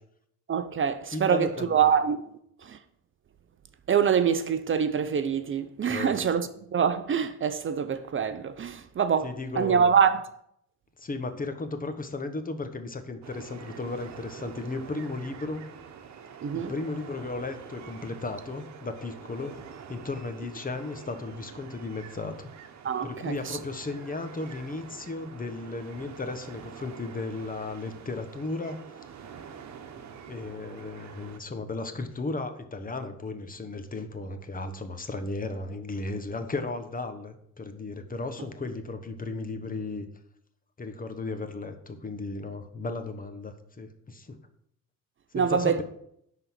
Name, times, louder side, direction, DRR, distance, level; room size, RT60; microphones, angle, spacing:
voice 1, 0.5-2.2 2.6-2.8 3.9-10.2 16.4-16.7 22.8-23.6 45.3-45.8, right 7 dB, 40° right, 0.7 m, -25 dB
voice 2, 1.1-1.9 5.9-6.1 9.2-9.9 11.0-15.6 16.5-19.6 19.9-22.5 23.0-29.1 30.3-40.1 40.8-44.4 45.3-45.8, left 3 dB, 30° left, 1.2 m, -35 dB
sound 1, 13.2-31.4, right 7 dB, 65° right, 1.2 m, -46 dB
11.0 x 4.1 x 7.4 m
cardioid pair, 90°, 30 cm